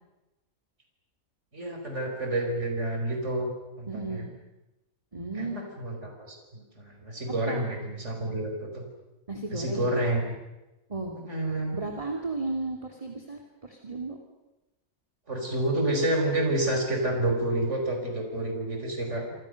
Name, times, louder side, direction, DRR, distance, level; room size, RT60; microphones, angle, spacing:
voice 1, 1.5-3.5 3.8-4.3 5.3-8.8 9.5-10.2 11.2-11.8 15.3-19.3, right 1 dB, 50° right, 2 dB, 5.3 m, -29 dB
voice 2, 3.9-4.2 5.1-5.6 7.5-7.6 9.3-9.8 10.9-11.1 11.7-14.2, right 3 dB, 20° right, 1 dB, 2.8 m, -34 dB
27.5 x 27.0 x 6.6 m, 1.0 s
omnidirectional pair, 1.6 m